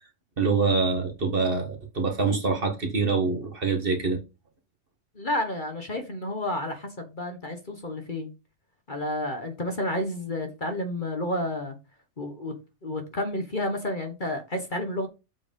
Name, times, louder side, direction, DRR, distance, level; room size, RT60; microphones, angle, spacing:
voice 1, 0.4-4.2, right 4 dB, 40° right, 1.7 m, -25 dB
voice 2, 5.1-8.3 8.9-11.8 12.2-12.5 12.8-15.1, left 1 dB, 35° left, 1.4 m, -30 dB
7.4 x 5.0 x 5.2 m
omnidirectional pair, 1.5 m